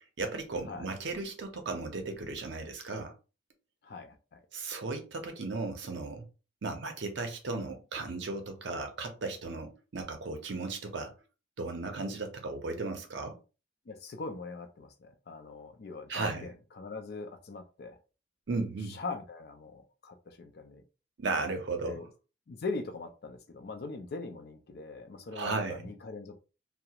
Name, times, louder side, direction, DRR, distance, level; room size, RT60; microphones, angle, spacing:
voice 1, 0.0-3.1 4.5-6.3 6.6-11.1 11.6-13.4 16.1-16.5 18.5-19.0 21.2-22.0 25.3-25.9, right 3 dB, 65° right, 0.6 m, -35 dB
voice 2, 3.8-4.4 13.9-18.0 18.9-20.8 21.8-22.1 22.5-26.4, left 3 dB, 55° left, 0.4 m, -41 dB
2.3 x 2.0 x 2.8 m
head